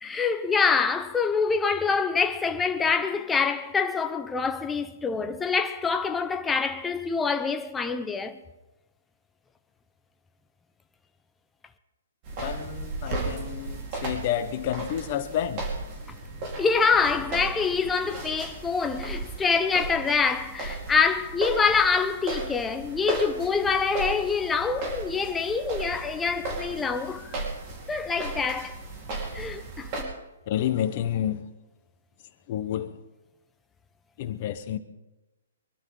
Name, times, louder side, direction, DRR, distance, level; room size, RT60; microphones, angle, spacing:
voice 1, 0.0-8.4 16.6-27.4 27.9-28.8 29.3-30.1, left 5 dB, 10° left, 0.8 m, -25 dB
sound 1, 12.2-30.0, right 2 dB, 35° right, 4.4 m, -35 dB
voice 2, 12.4-15.6 30.5-31.5 32.5-32.9 34.2-34.8, left 10 dB, 40° left, 1.2 m, -29 dB
23.5 x 12.5 x 4.0 m
hypercardioid pair, 150°, 0 cm